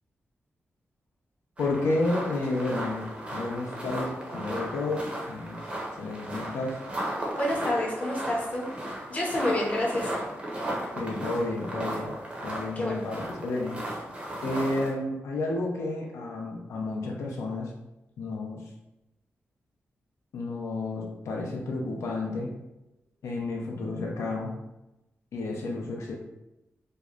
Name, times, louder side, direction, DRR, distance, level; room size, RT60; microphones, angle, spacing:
voice 1, 1.6-3.1 3.3-5.6 6.0-6.8 10.9-12.1 12.4-13.8 14.4-17.7 18.2-18.6 20.3-22.5 23.2-24.5 25.3-26.2, left 2 dB, 90° left, -1 dB, 0.4 m, -31 dB
sound 1, 1.6-14.9, right 1 dB, 25° right, 0.5 m, -35 dB
voice 2, 7.4-8.7 9.1-10.1 12.8-13.1, left 1 dB, 30° left, -3 dB, 0.6 m, -28 dB
2.7 x 2.0 x 2.3 m, 0.92 s
wide cardioid pair, 150°, 5 cm